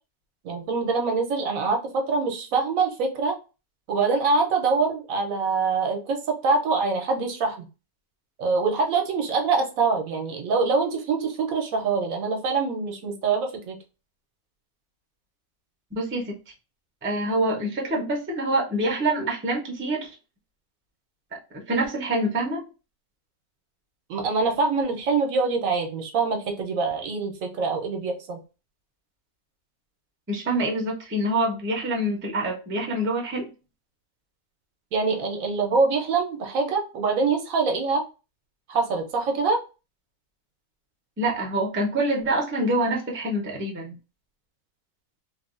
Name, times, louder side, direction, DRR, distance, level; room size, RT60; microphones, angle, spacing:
voice 1, 0.4-3.3 3.9-6.2 6.4-7.7 8.4-13.8 24.1-28.4 34.9-38.0 38.7-39.6, right 4 dB, 70° right, 3 dB, 1.1 m, -24 dB
voice 2, 15.9-16.3 17.0-20.1 21.7-22.6 30.3-33.5 41.2-43.9, right 1 dB, 15° right, -1 dB, 0.5 m, -26 dB
3.2 x 2.3 x 2.4 m, 0.31 s
omnidirectional pair, 1.5 m